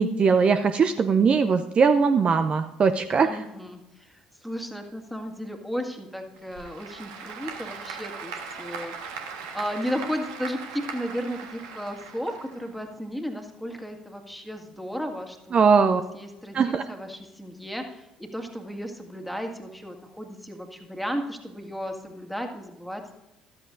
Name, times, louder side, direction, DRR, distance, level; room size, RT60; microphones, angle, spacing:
voice 1, 0.0-3.4 15.5-16.0 16.5-16.8, right 5 dB, 35° right, 9 dB, 0.6 m, -20 dB
voice 2, 3.2-23.2, equal, ahead, 3 dB, 1.9 m, -34 dB
Applause / Crowd, 6.3-12.9, right 5 dB, 70° right, 1.5 m, -39 dB
14.0 x 13.0 x 2.6 m, 0.98 s
figure-of-eight pair, 55°, 3 cm